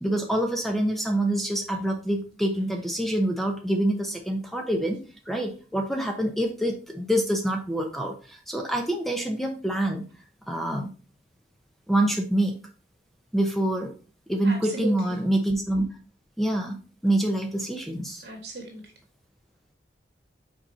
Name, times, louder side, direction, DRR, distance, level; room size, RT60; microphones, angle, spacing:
voice 1, 0.0-5.0 5.3-10.1 10.5-10.9 11.9-12.6 13.3-13.9 14.3-15.9 16.4-18.2, right 1 dB, ahead, 3 dB, 0.8 m, -26 dB
voice 2, 14.4-15.2 18.2-18.9, right 3 dB, 70° right, 3 dB, 1.9 m, -37 dB
5.7 x 4.3 x 4.3 m, 0.37 s
head